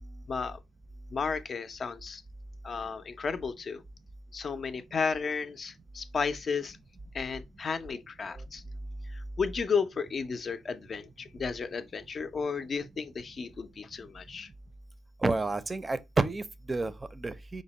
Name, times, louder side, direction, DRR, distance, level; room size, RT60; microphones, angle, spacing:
voice 1, 0.3-0.6 1.1-2.2 2.6-3.8 4.3-6.8 7.1-8.6 9.1-14.5, left 5 dB, 45° left, 0.5 m, -33 dB
voice 2, 15.2-17.6, right 3 dB, 20° right, 0.5 m, -30 dB
5.1 x 2.1 x 4.0 m
cardioid pair, 90°, 0 cm